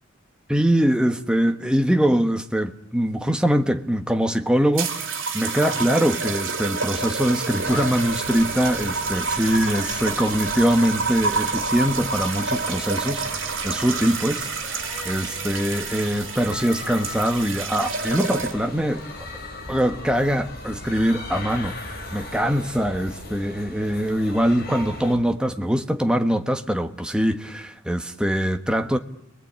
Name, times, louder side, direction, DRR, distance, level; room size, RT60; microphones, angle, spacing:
voice 1, 0.5-19.0 19.7-29.0, equal, 5° right, 1.3 m, -23 dB
sound 1, 4.8-18.8 19.7-20.0, right 4 dB, 65° right, 3.1 m, -28 dB
museum atmos, 7.6-25.1, left 2 dB, 50° left, 5.8 m, -38 dB
29.5 x 21.5 x 8.8 m
head